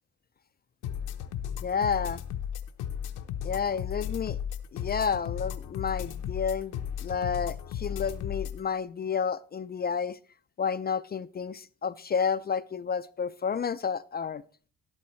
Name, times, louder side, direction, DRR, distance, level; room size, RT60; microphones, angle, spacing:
sound 1, 0.8-8.6, left 9 dB, 85° left, 0.9 m, -35 dB
voice 1, 1.6-2.2 3.4-4.4 4.7-10.2 10.6-14.4, left 6 dB, 30° left, 0.4 m, -30 dB
13.0 x 10.5 x 3.1 m
cardioid pair, 90°, 30 cm